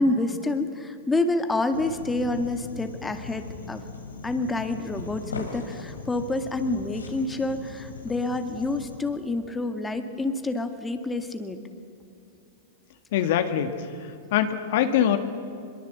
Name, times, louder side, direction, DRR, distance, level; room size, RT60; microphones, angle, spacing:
voice 1, 0.0-3.8 4.2-11.6, left 2 dB, 10° left, 7 dB, 2.0 m, -28 dB
sound 1, 1.7-9.0, left 4 dB, 90° left, 3.4 m, -39 dB
voice 2, 13.1-13.7 14.3-15.2, left 10 dB, 60° left, 8 dB, 1.9 m, -22 dB
23.5 x 22.5 x 8.2 m, 2.5 s
hypercardioid pair, 105°, 0 cm